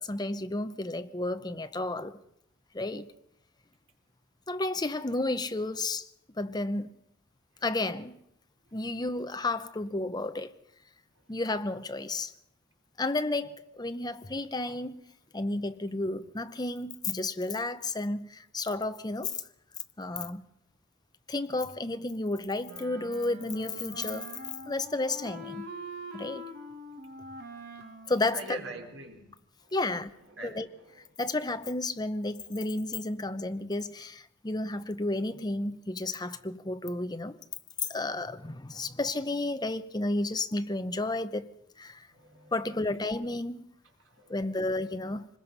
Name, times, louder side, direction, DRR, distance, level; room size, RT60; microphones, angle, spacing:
voice 1, 0.0-2.2 2.7-3.1 4.5-6.0 6.4-6.9 7.6-8.2 8.7-10.5 11.3-12.3 13.0-15.0 15.3-19.3 20.0-20.4 21.3-24.3 24.7-25.7 26.1-26.5 28.1-28.6 29.7-30.1 30.4-30.7 31.2-37.4 37.9-41.5 41.8-42.1 42.5-43.7 44.3-45.3, left 2 dB, 20° left, 0.8 m, -32 dB
Wind instrument woodwind instrument, 22.6-29.2, right 1 dB, 55° right, 3.2 m, -44 dB
voice 2, 28.3-29.3 30.4-30.9 42.1-42.5 44.2-44.3, right 2 dB, 85° right, 4.1 m, -43 dB
25.0 x 21.0 x 5.5 m
head